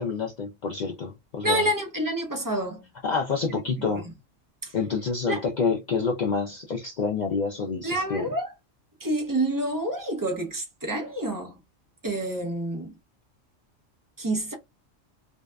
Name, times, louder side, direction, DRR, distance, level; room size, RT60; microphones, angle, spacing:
voice 1, 0.0-1.7 3.0-4.1 4.7-8.3, left 5 dB, 90° left, 0.4 m, -28 dB
voice 2, 1.4-2.9 3.5-4.0 4.6-4.7 5.3-5.4 7.8-8.5 9.0-11.6 12.0-12.9 14.2-14.5, right 1 dB, 25° right, 0.5 m, -28 dB
2.6 x 2.3 x 2.2 m
omnidirectional pair, 1.3 m